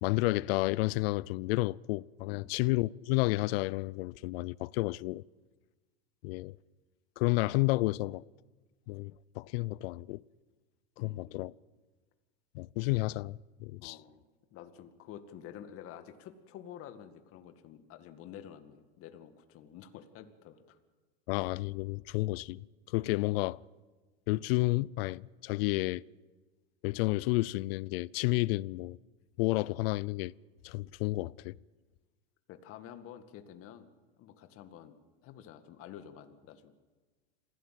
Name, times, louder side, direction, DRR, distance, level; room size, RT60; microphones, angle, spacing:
voice 1, 0.0-5.2 6.2-6.5 7.2-8.2 8.9-10.2 11.0-11.5 12.5-14.0 21.3-23.6 24.3-26.1 26.8-29.0 29.4-30.3 30.6-31.6, left 21 dB, 65° left, 0.6 m, -31 dB
voice 2, 11.0-11.5 13.8-14.2 14.5-20.8 32.5-33.9 34.2-34.9 35.2-36.7, left 9 dB, 45° left, 2.0 m, -49 dB
27.0 x 16.5 x 7.7 m
supercardioid pair, 125°, 32 cm